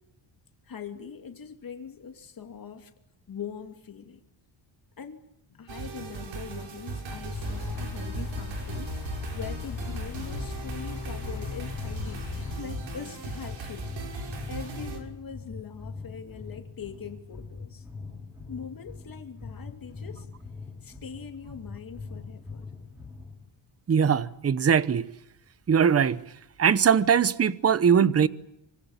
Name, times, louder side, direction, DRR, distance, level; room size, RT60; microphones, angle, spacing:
voice 1, 0.6-2.9 3.3-4.2 5.0-5.2 5.5-17.9 18.5-20.3 20.8-22.7, left 7 dB, 45° left, 2.7 m, -42 dB
sound 1, 5.7-15.0, right 3 dB, 70° right, 6.2 m, -37 dB
sound 2, 7.0-23.5, left 4 dB, 5° right, 5.8 m, -42 dB
sound 3, 7.3-12.6, left 8 dB, 80° left, 4.5 m, -38 dB
voice 2, 23.9-25.1 25.7-26.2 26.6-28.3, right 7 dB, 30° right, 0.9 m, -21 dB
27.0 x 25.0 x 7.3 m
cardioid pair, 140°, 48 cm